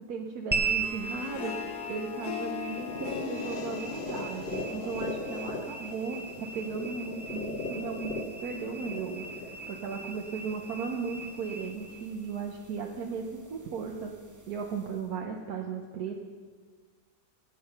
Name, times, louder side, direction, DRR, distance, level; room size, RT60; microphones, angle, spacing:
voice 1, 0.1-14.1 14.5-16.2, right 5 dB, 70° right, 1 dB, 1.5 m, -36 dB
sound 1, 0.5-15.1, right 4 dB, 20° right, 0.6 m, -39 dB
Harp, 0.6-5.8, left 10 dB, 80° left, 1.3 m, -40 dB
sound 2, 2.8-10.8, left 2 dB, 35° left, 1.4 m, -39 dB
18.0 x 8.6 x 5.7 m, 1.5 s
omnidirectional pair, 1.7 m